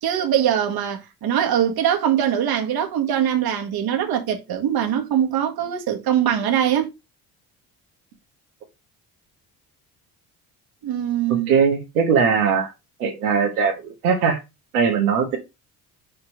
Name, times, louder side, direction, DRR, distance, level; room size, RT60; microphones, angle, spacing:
voice 1, 0.0-6.9 10.8-11.5, right 9 dB, 55° right, 1.7 m, -22 dB
voice 2, 11.3-12.7 13.0-14.4 14.7-15.4, right 6 dB, 90° right, 1.6 m, -20 dB
5.3 x 4.4 x 5.3 m
hypercardioid pair, 60°, 43 cm